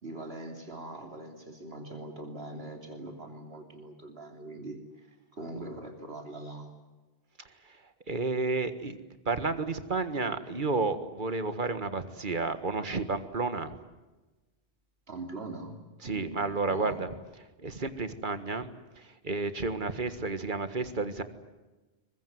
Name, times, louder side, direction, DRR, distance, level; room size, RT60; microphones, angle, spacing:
voice 1, 0.0-5.1 5.3-6.7 15.1-15.8 16.0-17.1, right 2 dB, 75° right, 4 dB, 3.3 m, -42 dB
voice 2, 8.1-9.0 9.3-13.8 16.0-17.1 17.6-21.2, right 3 dB, 50° right, 10 dB, 1.8 m, -31 dB
23.5 x 21.5 x 9.5 m, 1.2 s
omnidirectional pair, 1.0 m